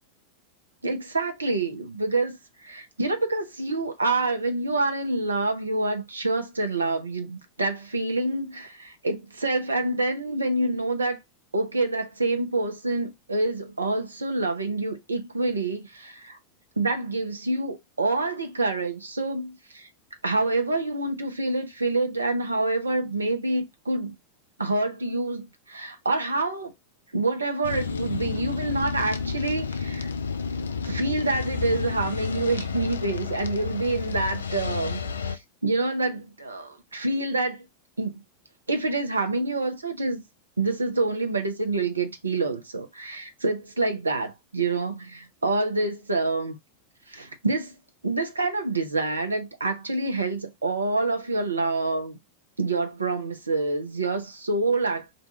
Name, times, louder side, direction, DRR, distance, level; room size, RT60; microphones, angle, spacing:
voice 1, 0.8-2.4 2.6-11.2 11.5-16.4 16.8-19.9 20.2-24.2 24.6-26.7 27.1-30.1 30.8-37.6 38.0-38.2 38.7-40.2 40.6-46.6 47.1-47.7 48.0-52.2 52.6-55.1, right 2 dB, 75° right, 0.7 m, -27 dB
sound 1, 27.6-35.4, left 5 dB, 70° left, 0.3 m, -31 dB
2.6 x 2.3 x 4.0 m
figure-of-eight pair, 90°, 0 cm